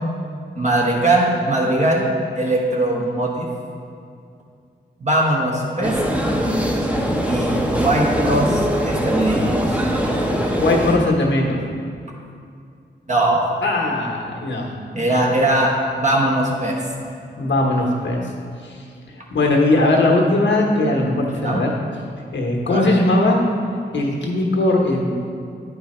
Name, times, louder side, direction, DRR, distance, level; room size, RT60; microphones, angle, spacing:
voice 1, 0.6-3.5 5.0-6.0 7.3-9.8 13.1-13.4 14.9-16.8 21.3-21.6 22.7-22.9, right 1 dB, 40° right, -3 dB, 1.1 m, -20 dB
sound 1, 5.8-11.0, equal, 5° right, 0.8 m, -21 dB
voice 2, 10.5-11.6 13.6-14.7 15.0-15.2 17.4-18.3 18.6-21.7 22.3-23.4 23.9-25.2, left 2 dB, 85° left, 0 dB, 1.1 m, -19 dB
9.5 x 4.6 x 4.3 m, 2.3 s
cardioid pair, 70°, 19 cm